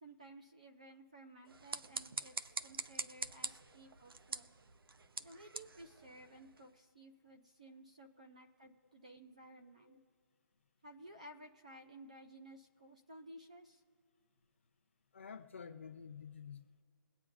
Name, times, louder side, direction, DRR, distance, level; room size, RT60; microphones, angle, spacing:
voice 1, 0.0-4.5 5.2-10.0 10.8-13.8, right 1 dB, 20° right, 3 dB, 0.4 m, -56 dB
sound 1, 1.4-6.7, right 4 dB, 80° right, 0.7 m, -45 dB
voice 2, 15.1-16.8, left 6 dB, 35° left, 7 dB, 0.7 m, -50 dB
22.5 x 8.7 x 2.6 m, 2.2 s
hypercardioid pair, 175°, 12 cm